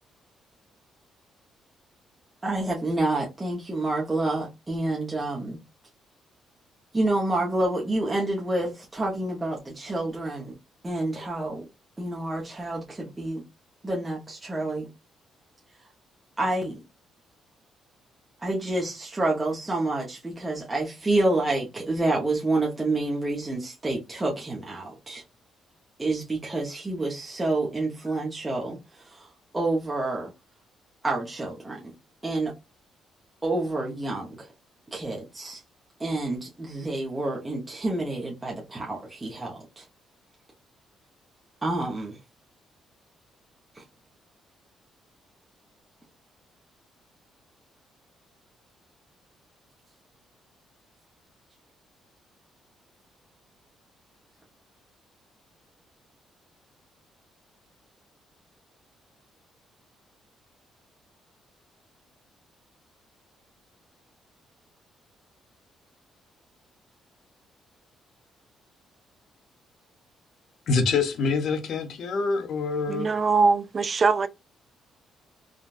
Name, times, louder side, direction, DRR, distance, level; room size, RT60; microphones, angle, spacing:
voice 1, 2.4-5.6 6.9-10.6 10.8-11.7 12.0-13.4 13.8-14.9 16.4-16.8 18.4-25.2 26.0-30.3 31.0-31.9 32.2-32.5 33.4-34.5 34.9-35.6 36.0-39.8 41.6-42.2 43.7-43.8, right 2 dB, 20° right, 0.9 m, -28 dB
voice 2, 70.7-73.2, left 4 dB, 70° left, 0.8 m, -26 dB
voice 3, 72.9-74.3, right 4 dB, 40° right, 0.3 m, -22 dB
3.7 x 2.3 x 2.5 m
cardioid pair, 90°, 0 cm